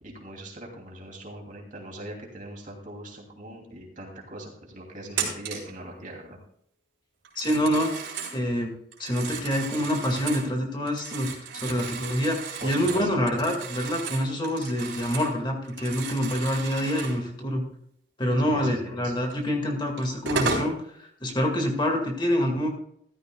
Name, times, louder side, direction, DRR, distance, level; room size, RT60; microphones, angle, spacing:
voice 1, 0.0-6.4 12.6-13.2 18.4-19.1, right 1 dB, 45° right, 0 dB, 2.8 m, -41 dB
Telephone, 5.1-5.7 7.2-8.4 8.9-10.5 10.9-15.4 15.6-17.2 19.3-19.4 20.0-20.7, right 4 dB, 85° right, 3.7 m, -34 dB
voice 2, 7.4-7.9 8.3-8.7 9.0-11.3 11.5-17.6 18.2-20.7 21.2-22.7, equal, 25° left, 2 dB, 2.0 m, -26 dB
14.5 x 13.0 x 2.3 m, 0.68 s
head